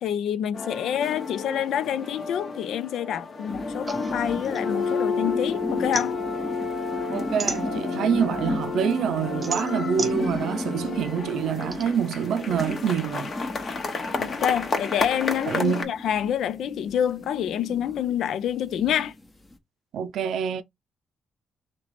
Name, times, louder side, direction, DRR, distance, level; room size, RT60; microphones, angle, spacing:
voice 1, 0.0-6.2 14.2-19.1, left 10 dB, 75° left, 0.4 m, -27 dB
sound 1, 0.5-15.8, left 4 dB, 45° left, 1.0 m, -31 dB
sound 2, 3.5-19.6, left 1 dB, 20° left, 0.9 m, -37 dB
sound 3, 3.9-5.4 5.7-8.2 8.7-11.8, right 3 dB, 25° right, 0.6 m, -34 dB
voice 2, 7.1-13.3 15.5-15.9 19.9-20.6, right 8 dB, 75° right, 0.5 m, -26 dB
3.0 x 2.9 x 4.1 m
cardioid pair, 90°, 0 cm